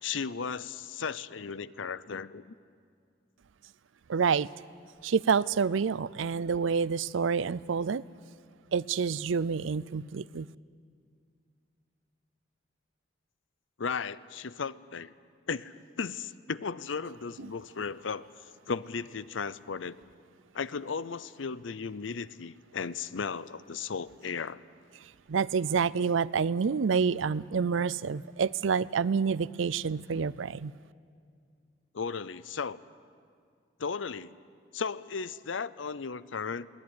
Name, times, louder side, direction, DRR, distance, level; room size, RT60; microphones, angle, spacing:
voice 1, 0.0-2.5 13.8-15.1 15.5-18.3 18.7-20.0 20.5-24.6 31.9-32.8 33.8-34.3 34.7-36.7, left 5 dB, 80° left, 17 dB, 0.6 m, -35 dB
voice 2, 4.1-4.5 5.0-8.0 8.7-10.5 25.3-30.7, right 6 dB, 80° right, 20 dB, 0.5 m, -28 dB
22.0 x 18.0 x 9.5 m, 2.3 s
head